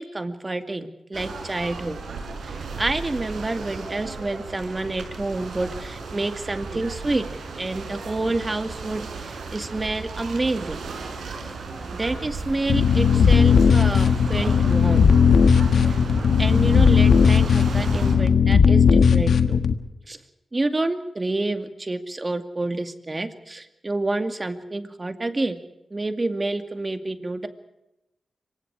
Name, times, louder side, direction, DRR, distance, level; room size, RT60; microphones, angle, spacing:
voice 1, 0.0-2.0 2.4-7.2 7.6-10.8 11.9-15.1 15.9-16.0 16.4-19.6 20.1-20.2 20.5-25.6 25.9-27.5, right 2 dB, 30° right, 8 dB, 2.3 m, -28 dB
sound 1, 1.1-18.1, right 4 dB, 90° right, 5.5 m, -35 dB
sound 2, 12.7-19.7, left 6 dB, 80° left, 1.5 m, -17 dB
26.5 x 24.5 x 4.9 m, 0.91 s
cardioid pair, 80°, 0 cm